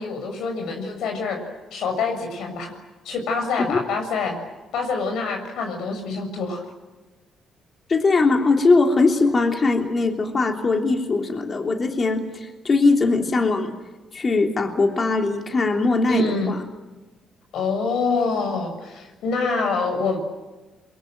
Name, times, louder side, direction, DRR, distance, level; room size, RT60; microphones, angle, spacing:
voice 1, 0.0-1.4 1.7-2.7 3.1-4.4 4.7-6.6 16.1-16.6 17.5-20.2, left 4 dB, 80° left, 5 dB, 6.9 m, -25 dB
voice 2, 7.9-13.7 14.1-16.6, left 3 dB, 35° left, 3 dB, 3.2 m, -20 dB
27.5 x 23.0 x 9.2 m, 1.2 s
cardioid pair, 90°, 0 cm